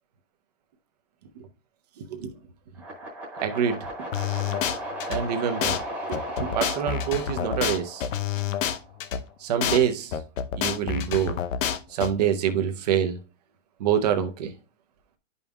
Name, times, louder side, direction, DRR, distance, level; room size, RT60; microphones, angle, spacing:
sound 1, 2.7-8.9, equal, 5° right, 1.1 m, -36 dB
voice 1, 3.4-3.8 5.1-5.7 6.1-8.0 9.4-10.1 10.5-11.4 11.9-13.2 13.8-14.5, right 9 dB, 35° right, 0.7 m, -25 dB
sound 2, 4.1-5.2 5.6-5.8 6.1-9.2 9.6-9.8 10.1-12.1, left 8 dB, 90° left, 0.8 m, -27 dB
10.5 x 5.4 x 2.3 m
supercardioid pair, 180°, 38 cm